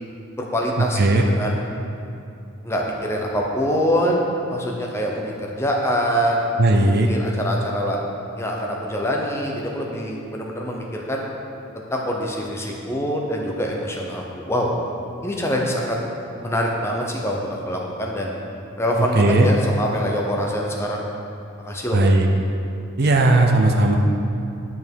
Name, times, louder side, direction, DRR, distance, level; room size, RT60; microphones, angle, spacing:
voice 1, 0.4-1.6 2.6-6.4 6.7-8.0 8.4-11.2 11.9-14.7 15.2-16.0 16.4-18.3 18.8-21.0 21.6-22.1, equal, 10° left, -1 dB, 0.8 m, -25 dB
voice 2, 6.6-7.1 19.1-19.5 21.9-22.3 23.0-24.0, right 2 dB, 50° right, 2 dB, 0.6 m, -16 dB
8.9 x 5.5 x 4.6 m, 2.6 s
head